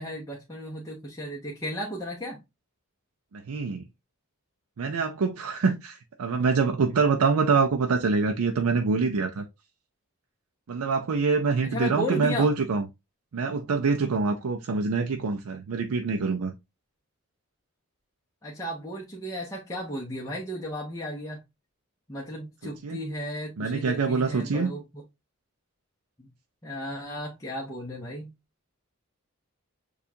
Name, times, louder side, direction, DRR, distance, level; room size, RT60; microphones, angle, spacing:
voice 1, 0.0-2.4 11.6-12.5 18.4-21.4 22.1-24.8 26.2-26.3 26.6-28.3, equal, 15° left, 0.8 m, -34 dB
voice 2, 3.3-3.8 4.8-9.4 10.7-12.9 13.3-16.5 22.8-23.0 23.6-24.7, right 4 dB, 85° right, 0.5 m, -25 dB
6.7 x 2.4 x 2.7 m
head